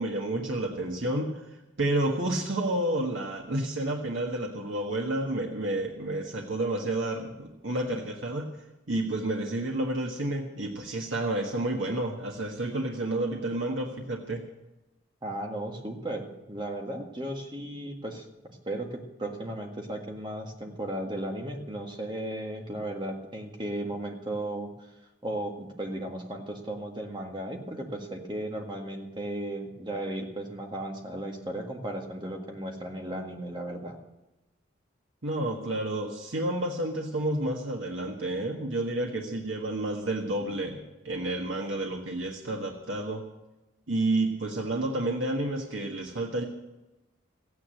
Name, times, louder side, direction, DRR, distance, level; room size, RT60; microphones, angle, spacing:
voice 1, 0.0-1.4 1.8-8.5 8.9-14.4 35.2-43.2 43.9-46.4, right 1 dB, 70° right, 1 dB, 1.5 m, -30 dB
voice 2, 15.2-18.3 18.7-24.7 25.2-34.0, right 1 dB, 25° right, 2 dB, 1.8 m, -35 dB
15.0 x 9.7 x 7.7 m, 1.0 s
head